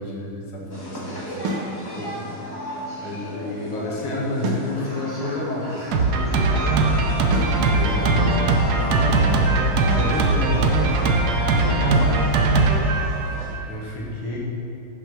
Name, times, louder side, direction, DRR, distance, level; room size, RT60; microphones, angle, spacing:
voice 1, 0.0-1.3 2.0-2.1 2.4-5.9 7.2-11.0 13.7-14.4, left 1 dB, 80° left, -3 dB, 2.5 m, -31 dB
sound 1, 0.7-13.5, left 1 dB, 15° left, 1.3 m, -33 dB
sound 2, 1.4-1.7 4.4-4.7 7.3-7.6, right 2 dB, 85° right, 1.8 m, -27 dB
Drum kit, 5.9-13.7, right 3 dB, 65° right, 1.0 m, -20 dB
voice 2, 6.6-8.7 11.5-12.4, left 2 dB, 60° left, 2 dB, 1.2 m, -34 dB
7.9 x 6.2 x 5.9 m, 2.6 s
omnidirectional pair, 2.4 m